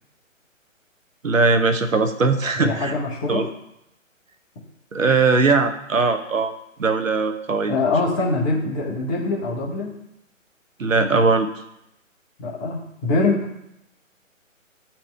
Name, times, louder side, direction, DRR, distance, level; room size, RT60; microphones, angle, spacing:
voice 1, 1.2-2.9 3.3-3.5 4.9-6.5 6.8-7.8 10.8-11.5, right 4 dB, 75° right, 8 dB, 0.9 m, -20 dB
voice 2, 2.6-3.4 7.7-9.9 12.4-13.4, left 3 dB, 15° left, -4 dB, 0.9 m, -23 dB
10.0 x 4.3 x 3.2 m, 0.82 s
figure-of-eight pair, 135°, 40 cm